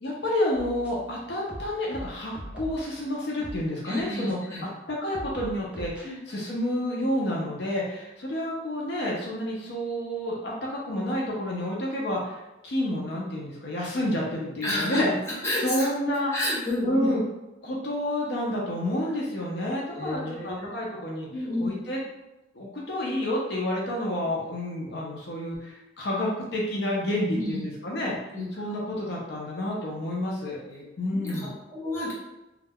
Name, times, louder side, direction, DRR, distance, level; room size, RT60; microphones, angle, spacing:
voice 1, 0.0-4.4 4.9-15.2 15.6-16.3 16.8-17.2 17.6-21.3 21.6-22.0 22.5-30.6 31.0-31.5, left 1 dB, 60° left, -3 dB, 0.5 m, -29 dB
sound 1, 0.5-1.1 1.5-2.9 3.4-3.6 4.3-4.4 5.1-6.1, equal, 5° right, 0.4 m, -40 dB
voice 2, 3.8-4.7 6.0-6.2 14.6-15.0 15.4-15.9 16.3-17.1 19.8-20.7 21.3-21.7 27.3-27.6 28.3-28.5 30.6-30.8 31.1-32.1, left 1 dB, 15° left, -8 dB, 0.8 m, -30 dB
2.3 x 2.2 x 3.4 m, 0.98 s
head